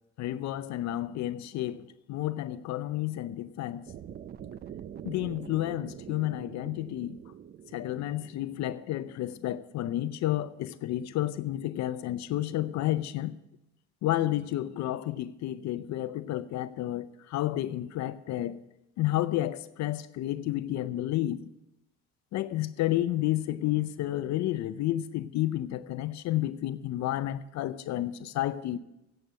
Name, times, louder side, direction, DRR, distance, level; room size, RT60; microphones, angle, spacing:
voice 1, 0.2-3.9 5.0-7.2 7.7-13.3 14.0-18.6 19.0-21.4 22.3-28.8, left 14 dB, 60° left, 0.6 m, -31 dB
sound 1, 3.9-10.0, right 9 dB, 35° right, 0.4 m, -45 dB
8.9 x 7.8 x 8.3 m
cardioid pair, 110°, 31 cm